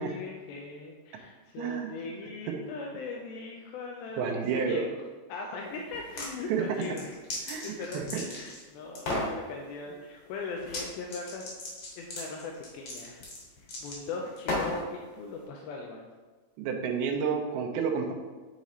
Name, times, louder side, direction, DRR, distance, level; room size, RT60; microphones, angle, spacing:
voice 1, 0.0-5.0 5.3-7.2 7.6-11.5 12.0-13.3 13.6-16.1, left 4 dB, 85° left, 0 dB, 2.4 m, -39 dB
voice 2, 1.6-2.0 2.5-2.6 4.2-4.8 6.5-6.9 7.5-8.2 16.6-18.1, right 6 dB, 90° right, 2 dB, 2.6 m, -30 dB
sound 1, 5.9-6.3 6.7-8.6 8.9-9.3 10.6-10.8 11.1-14.8, left 2 dB, 50° left, 2.0 m, -35 dB
9.3 x 4.0 x 3.1 m, 1.3 s
omnidirectional pair, 4.3 m